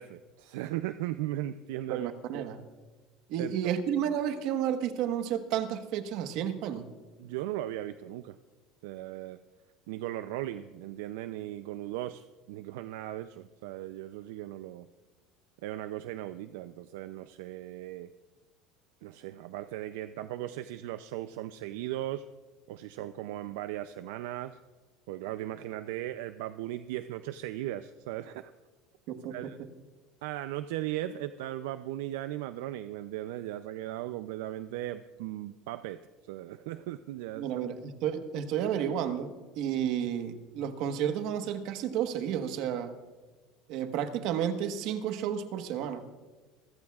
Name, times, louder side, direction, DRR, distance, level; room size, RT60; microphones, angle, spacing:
voice 1, 0.0-2.4 3.4-3.7 7.2-8.4 8.8-9.4 9.9-14.9 15.6-18.1 19.0-22.3 22.7-24.6 25.1-28.5 29.3-29.6 30.2-36.0 36.3-37.6, right 14 dB, 85° right, 0.4 m, -37 dB
voice 2, 1.9-2.6 3.3-6.9 29.1-29.7 37.4-42.9 43.7-46.0, right 9 dB, 65° right, 1.3 m, -32 dB
27.0 x 15.0 x 2.4 m
supercardioid pair, 125°, 0 cm